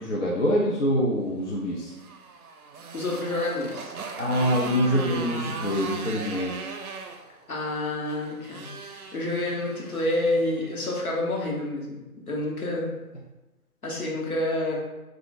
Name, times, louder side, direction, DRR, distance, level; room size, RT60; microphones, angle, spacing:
voice 1, 0.0-1.9 4.2-6.7, equal, 50° left, -5 dB, 0.5 m, -25 dB
Motorcycle, 1.7-11.1, right 4 dB, 70° right, 0.5 m, -38 dB
voice 2, 2.9-3.9 7.5-12.0 12.3-12.9 13.8-14.8, left 1 dB, 65° left, -3 dB, 1.1 m, -28 dB
2.4 x 2.4 x 3.8 m, 1.0 s
figure-of-eight pair, 165°, 45 cm